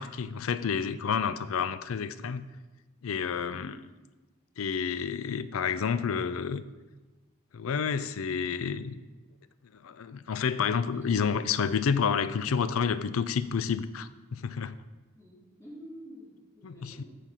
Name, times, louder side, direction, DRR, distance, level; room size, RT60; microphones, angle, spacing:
voice 1, 0.0-2.5 3.0-3.8 4.6-6.6 7.5-9.0 9.8-14.8 16.6-17.0, left 6 dB, 85° left, 14 dB, 0.4 m, -29 dB
voice 2, 3.4-3.8 10.9-11.3 15.1-17.0, equal, 15° left, -6 dB, 2.5 m, -49 dB
6.9 x 5.7 x 6.1 m, 1.2 s
head